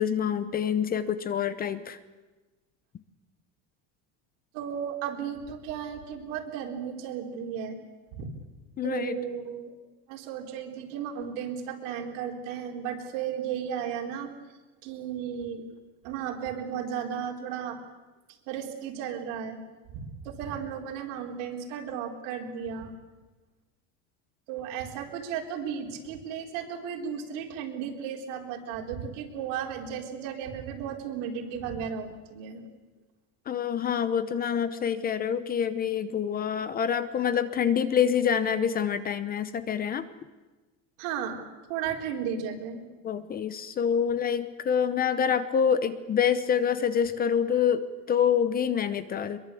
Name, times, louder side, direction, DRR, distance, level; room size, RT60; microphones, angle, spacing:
voice 1, 0.0-2.0 8.8-9.2 33.5-40.1 43.0-49.4, left 8 dB, 25° left, 13 dB, 0.9 m, -26 dB
voice 2, 4.5-7.8 8.1-8.4 8.8-9.8 10.1-14.3 14.8-15.6 16.0-17.8 18.5-19.6 19.9-22.9 24.5-32.6 41.0-41.4 41.7-42.8, right 8 dB, 70° right, 2 dB, 4.3 m, -34 dB
23.0 x 22.5 x 8.5 m, 1.2 s
cardioid pair, 160°, 39 cm